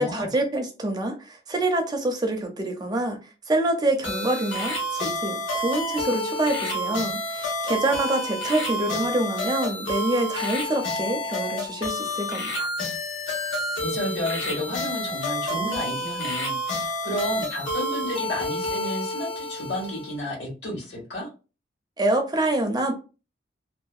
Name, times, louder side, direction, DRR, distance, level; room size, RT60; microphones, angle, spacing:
voice 1, 0.0-3.2 3.5-12.7 22.0-22.9, right 1 dB, 20° right, 4 dB, 0.4 m, -26 dB
sound 1, 4.0-20.2, left 1 dB, 85° left, 0.9 m, -29 dB
voice 2, 13.8-21.3, left 1 dB, 60° left, -4 dB, 1.5 m, -31 dB
2.7 x 2.2 x 2.3 m, 0.32 s
head